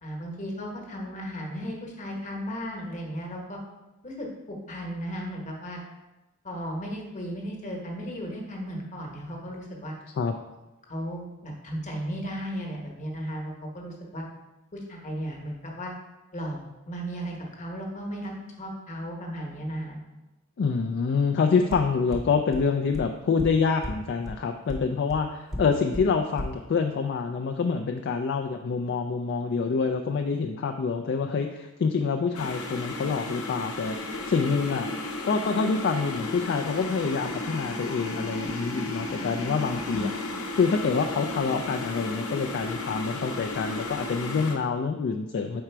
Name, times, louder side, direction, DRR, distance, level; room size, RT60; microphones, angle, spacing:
voice 1, 0.0-3.6 4.0-5.8 6.4-9.9 10.9-14.2 14.7-15.9 16.3-16.6 16.9-18.3 18.6-20.0 39.9-40.1, equal, 35° left, 0 dB, 1.1 m, -35 dB
voice 2, 20.6-34.0 34.3-34.9 35.2-40.1 40.5-45.6, left 5 dB, 50° left, 5 dB, 0.3 m, -26 dB
sound 1, 21.7-21.8 22.1-22.2 22.5-22.6 22.9-23.0 23.4-23.5 23.8-23.9 24.3-24.4 24.7-24.8 25.1-25.2 25.5-25.6 25.9-26.0 26.4-26.5, left 1 dB, ahead, 0.7 m, -33 dB
sound 2, 32.3-44.5, left 2 dB, 70° left, 0.8 m, -34 dB
4.9 x 4.4 x 4.5 m, 1.0 s
head